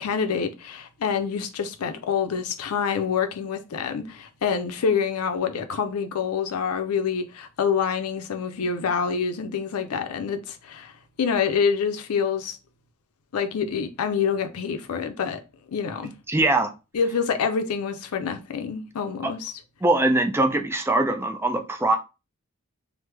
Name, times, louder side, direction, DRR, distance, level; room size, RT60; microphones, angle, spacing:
voice 1, 0.0-10.9 11.2-12.6 13.3-15.4 15.7-16.1 16.9-19.5, left 6 dB, 90° left, 0.5 m, -26 dB
voice 2, 16.3-16.7 19.2-19.3 19.8-22.0, right 2 dB, 10° right, 0.4 m, -22 dB
3.2 x 2.0 x 3.2 m
head